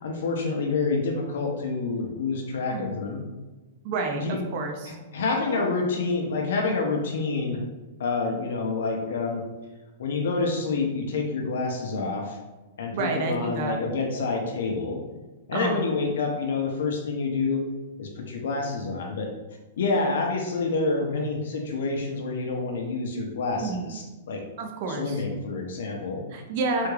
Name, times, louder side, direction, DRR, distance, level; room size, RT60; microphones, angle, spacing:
voice 1, 0.0-3.2 4.1-4.4 5.1-7.6 8.0-9.4 10.0-12.4 12.8-15.0 15.5-17.6 18.0-19.3 19.8-24.4 24.9-26.2, left 3 dB, 65° left, 1 dB, 0.6 m, -28 dB
voice 2, 3.8-5.0 11.9-12.1 12.9-13.8 15.5-15.8 23.6-23.8 24.6-25.2 26.3-26.9, right 3 dB, 35° right, 3 dB, 0.4 m, -29 dB
3.5 x 2.3 x 3.1 m, 1.1 s
hypercardioid pair, 175°, 0 cm